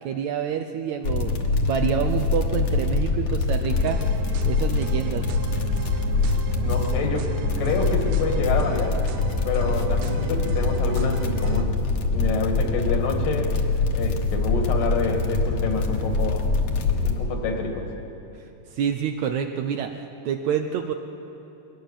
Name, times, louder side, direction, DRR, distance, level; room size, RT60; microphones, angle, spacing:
voice 1, 0.0-4.0 4.5-5.3 18.7-20.9, right 8 dB, 75° right, 6 dB, 1.8 m, -27 dB
sound 1, 1.0-17.1, left 3 dB, 55° left, 2.0 m, -24 dB
sound 2, 3.7-11.6, right 6 dB, 90° right, 2.7 m, -38 dB
voice 2, 6.5-9.0 9.5-11.8 12.1-13.5 13.9-16.4 17.0-17.9, left 3 dB, 75° left, 3 dB, 3.5 m, -27 dB
21.0 x 18.5 x 7.1 m, 2.9 s
omnidirectional pair, 3.9 m